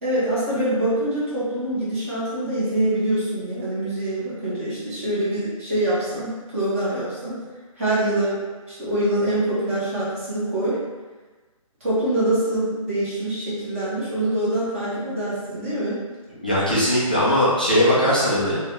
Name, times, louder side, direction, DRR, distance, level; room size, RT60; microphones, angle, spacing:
voice 1, 0.0-7.4 7.8-8.4 8.7-10.8 11.8-16.0, right 1 dB, 25° right, -9 dB, 1.0 m, -24 dB
voice 2, 16.4-18.6, equal, 15° left, -9 dB, 0.3 m, -19 dB
3.0 x 2.9 x 3.5 m, 1.3 s
hypercardioid pair, 170°, 18 cm